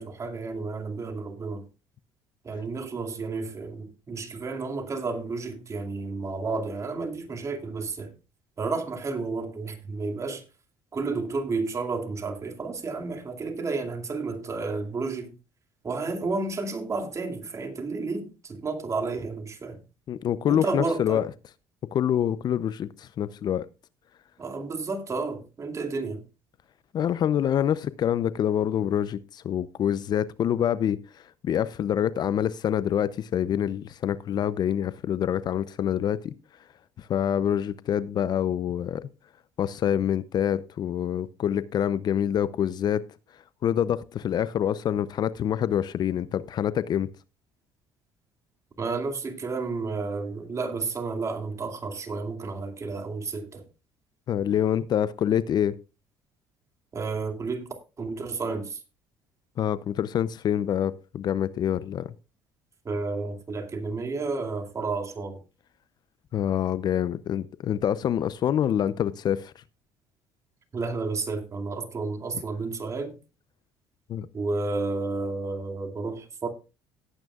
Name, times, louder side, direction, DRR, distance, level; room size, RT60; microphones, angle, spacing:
voice 1, 0.0-1.7 2.4-8.1 8.6-10.4 10.9-15.3 15.8-19.8 20.5-21.2 24.4-26.2 48.8-53.7 56.9-58.8 62.8-65.4 70.7-73.2 74.3-76.5, right 3 dB, 35° right, 2.4 m, -31 dB
voice 2, 20.1-21.3 21.9-23.7 26.9-31.0 31.4-36.3 37.1-39.1 39.6-43.0 43.6-47.1 54.3-55.8 59.6-62.1 66.3-69.5 74.1-74.3, left 9 dB, 50° left, 0.6 m, -26 dB
17.5 x 9.0 x 2.4 m
supercardioid pair, 90°, 9 cm